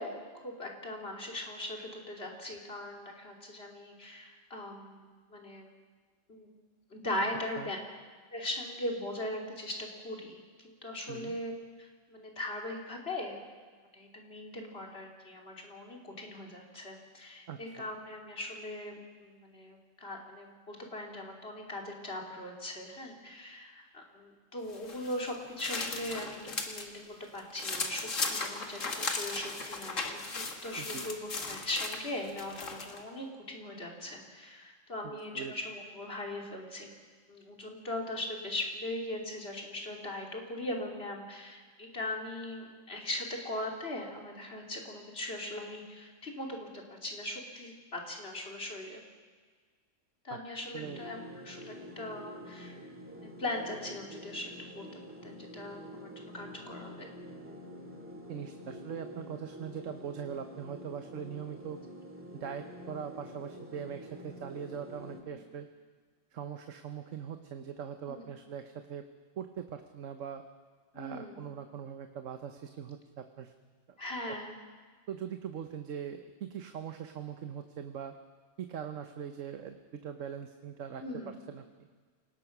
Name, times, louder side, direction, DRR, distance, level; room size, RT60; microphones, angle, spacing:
voice 1, 0.0-5.7 6.3-6.5 6.9-7.8 8.3-11.5 11.8-13.4 13.9-36.9 37.3-49.0 50.2-52.9 53.2-54.9 55.2-57.1 65.3-65.4 68.1-68.3 70.9-71.4 74.0-74.5 81.0-81.3, left 1 dB, 50° left, 1 dB, 3.4 m, -40 dB
voice 2, 17.5-17.9 30.8-31.0 35.0-35.5 50.3-50.4 50.7-51.0 51.3-51.5 58.3-61.8 62.3-65.7 66.3-69.1 69.4-70.4 70.9-73.5 75.1-78.2 78.6-81.6, right 8 dB, 80° right, 7 dB, 1.3 m, -41 dB
sound 1, 24.7-26.9 27.2-33.0, left 3 dB, 85° left, 2.3 m, -37 dB
sound 2, 50.8-65.2, equal, 10° right, 2.1 m, -47 dB
27.5 x 18.5 x 6.0 m, 1.5 s
omnidirectional pair, 1.3 m